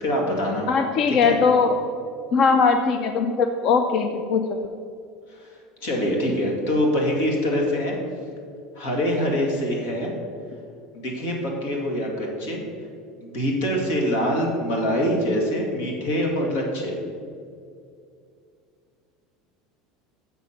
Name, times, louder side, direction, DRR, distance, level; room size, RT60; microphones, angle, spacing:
voice 1, 0.0-0.7 1.1-1.4 5.3-8.0 8.8-10.1 10.9-12.6 13.2-17.0, equal, 80° left, 0 dB, 2.1 m, -24 dB
voice 2, 0.7-1.8 2.3-4.6, left 5 dB, 45° left, 6 dB, 0.4 m, -20 dB
7.0 x 6.3 x 5.7 m, 2.4 s
cardioid pair, 150°, 0 cm